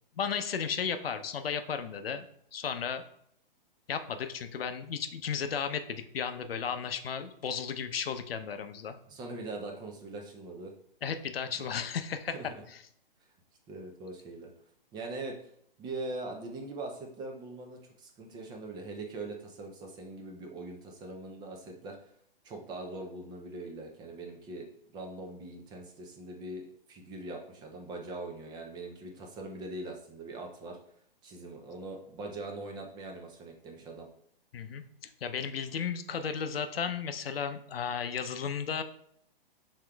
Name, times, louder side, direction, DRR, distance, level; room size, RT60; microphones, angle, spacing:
voice 1, 0.2-2.2 2.5-3.0 3.9-9.0 11.0-12.3 34.5-34.8 35.2-38.8, left 7 dB, 80° left, 9 dB, 0.6 m, -34 dB
voice 2, 9.1-10.7 11.6-11.7 12.3-12.5 13.7-14.5 14.9-15.4 15.8-22.1 22.4-24.7 24.9-30.8 31.2-34.1, right 2 dB, 15° right, 2 dB, 0.4 m, -42 dB
6.2 x 3.7 x 2.3 m, 0.67 s
hypercardioid pair, 130°, 29 cm